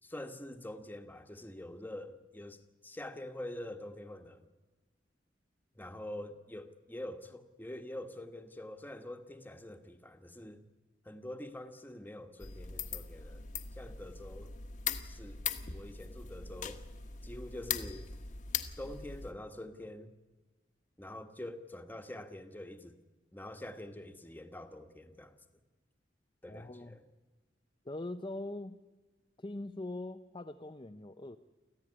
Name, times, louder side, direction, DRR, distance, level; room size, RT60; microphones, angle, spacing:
voice 1, 0.0-4.5 5.7-10.6 11.0-14.5 15.0-15.4 15.7-16.8 17.2-18.1 18.8-20.1 21.0-23.0 23.3-25.3 26.4-27.0, left 1 dB, 10° left, 7 dB, 1.4 m, -45 dB
sound 1, 12.4-19.3, left 7 dB, 45° left, 1.3 m, -40 dB
voice 2, 26.5-27.0 27.8-28.8 29.4-31.4, left 2 dB, 25° left, 5 dB, 0.7 m, -42 dB
25.5 x 15.0 x 9.8 m, 1.3 s
head